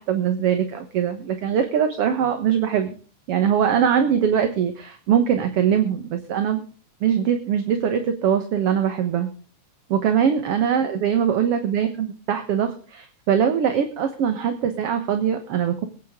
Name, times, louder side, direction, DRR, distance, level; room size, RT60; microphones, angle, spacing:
voice 1, 0.0-3.0 3.3-6.6 7.0-9.3 9.9-15.9, right 8 dB, 60° right, 7 dB, 2.1 m, -22 dB
22.0 x 9.5 x 3.7 m, 0.39 s
omnidirectional pair, 3.4 m